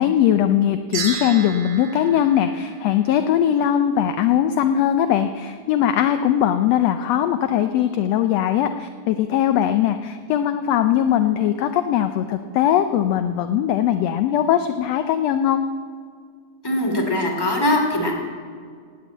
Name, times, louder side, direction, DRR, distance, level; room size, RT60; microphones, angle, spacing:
voice 1, 0.0-15.6, left 10 dB, 75° left, 9 dB, 1.6 m, -20 dB
sound 1, 0.9-3.4, right 5 dB, 60° right, 2.9 m, -33 dB
voice 2, 16.6-18.1, left 1 dB, 10° left, 0 dB, 2.3 m, -21 dB
17.5 x 8.8 x 8.5 m, 2.1 s
omnidirectional pair, 3.5 m